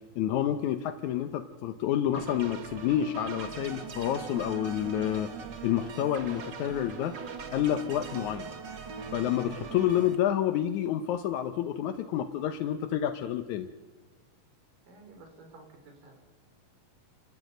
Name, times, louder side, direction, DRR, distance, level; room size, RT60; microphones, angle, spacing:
voice 1, 0.2-5.3 5.6-7.2 7.5-8.5 9.1-13.7, left 11 dB, 75° left, 8 dB, 1.8 m, -29 dB
sound 1, 2.1-10.2, right 6 dB, 45° right, 1.5 m, -41 dB
voice 2, 14.9-16.2, right 3 dB, 65° right, 4 dB, 5.3 m, -52 dB
28.0 x 13.5 x 9.2 m, 1.3 s
omnidirectional pair, 4.3 m